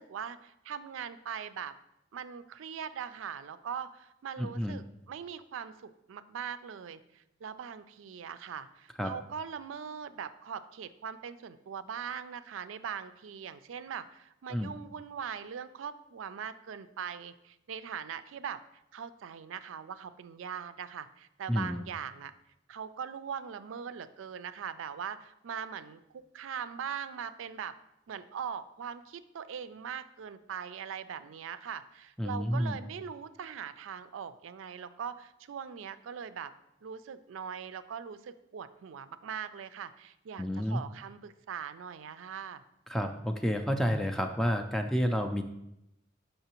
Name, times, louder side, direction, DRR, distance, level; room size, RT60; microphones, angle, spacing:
voice 1, 0.0-1.7 2.1-18.6 18.9-22.3 22.7-27.8 28.1-36.5 36.8-42.6, right 7 dB, 85° right, 13 dB, 0.4 m, -41 dB
voice 2, 4.4-4.8 9.0-9.1 14.5-14.7 21.5-21.8 32.2-32.8 40.4-40.8 42.9-45.4, equal, ahead, 3 dB, 0.3 m, -30 dB
6.7 x 5.4 x 2.9 m, 0.85 s
head